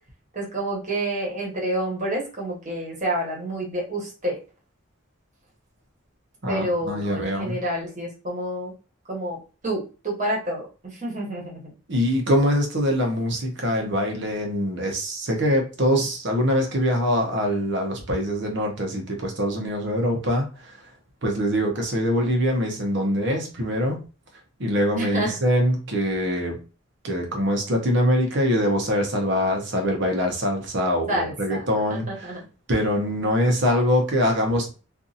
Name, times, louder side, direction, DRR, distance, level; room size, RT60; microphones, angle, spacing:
voice 1, 0.3-4.4 6.5-8.7 9.1-9.4 9.6-11.7 24.9-25.4 31.1-31.6 32.1-32.4, right 1 dB, 35° right, -3 dB, 1.2 m, -28 dB
voice 2, 6.4-7.6 11.9-20.8 21.2-24.0 24.6-26.6 27.0-32.3 32.7-34.7, equal, 55° right, 2 dB, 0.9 m, -23 dB
2.7 x 2.6 x 2.4 m, 0.33 s
head